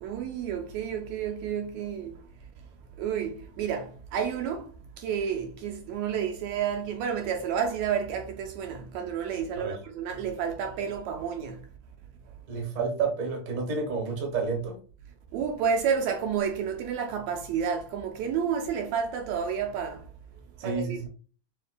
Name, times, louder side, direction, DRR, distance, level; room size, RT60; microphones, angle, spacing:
voice 1, 0.0-2.1 3.0-4.7 5.0-11.6 15.3-20.0 20.6-21.1, right 7 dB, 75° right, 1.8 m, -30 dB
voice 2, 12.5-14.8 20.6-21.1, right 4 dB, 50° right, 1.0 m, -30 dB
6.8 x 2.8 x 2.2 m
omnidirectional pair, 3.4 m